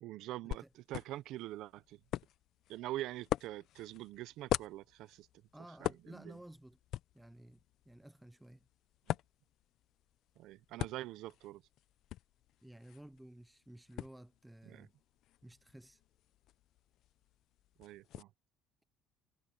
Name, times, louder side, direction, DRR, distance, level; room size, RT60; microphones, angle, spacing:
voice 1, 0.0-2.0 2.7-5.3 5.8-6.4 9.1-9.2 10.4-11.6 14.7-14.9 17.8-18.3, right 15 dB, 70° right, 0.7 m, -44 dB
sound 1, 0.5-18.2, left 13 dB, 65° left, 0.5 m, -44 dB
voice 2, 5.5-6.8 7.1-7.6 7.9-8.7 12.6-14.9 15.4-16.0, right 1 dB, 5° right, 0.4 m, -54 dB
cardioid pair, 125°, 0 cm